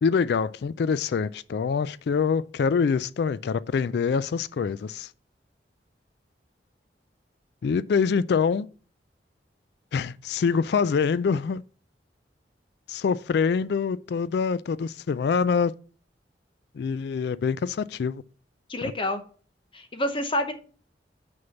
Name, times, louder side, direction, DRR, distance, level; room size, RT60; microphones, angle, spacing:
voice 1, 0.0-5.1 7.6-8.7 9.9-11.6 12.9-15.7 16.8-18.2 18.8-18.9, left 5 dB, 65° left, 0.3 m, -25 dB
voice 2, 18.7-19.2 19.7-20.5, left 1 dB, 30° left, 0.8 m, -28 dB
6.5 x 5.4 x 7.0 m
head